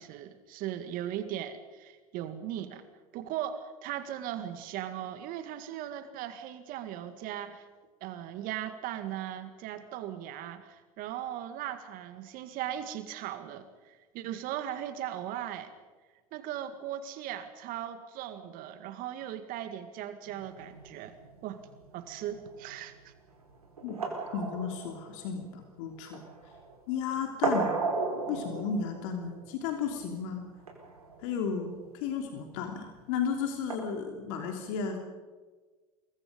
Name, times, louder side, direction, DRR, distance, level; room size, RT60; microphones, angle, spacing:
voice 1, 0.0-2.8 3.1-7.7 8.0-15.7 16.3-21.2 21.4-21.6 21.9-23.1, right 11 dB, 50° right, 10 dB, 2.0 m, -38 dB
sound 1, 20.2-33.7, right 3 dB, 85° right, 4.6 m, -37 dB
voice 2, 23.8-26.3 26.9-27.8 28.3-30.5 31.2-35.0, left 6 dB, 60° left, 3 dB, 3.2 m, -34 dB
27.0 x 22.5 x 5.3 m, 1.3 s
hypercardioid pair, 85°, 19 cm